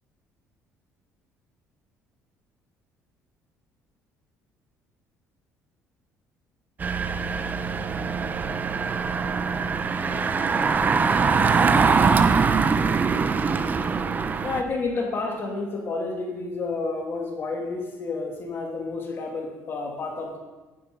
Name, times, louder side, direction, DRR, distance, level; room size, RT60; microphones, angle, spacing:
Engine, 6.8-14.6, right 5 dB, 30° right, 0.9 m, -23 dB
voice 1, 10.0-12.2, left 1 dB, 20° left, -2 dB, 4.1 m, -43 dB
voice 2, 14.4-20.4, left 3 dB, 45° left, 1 dB, 2.9 m, -30 dB
15.5 x 11.0 x 5.5 m, 1.2 s
cardioid pair, 115°, 6 cm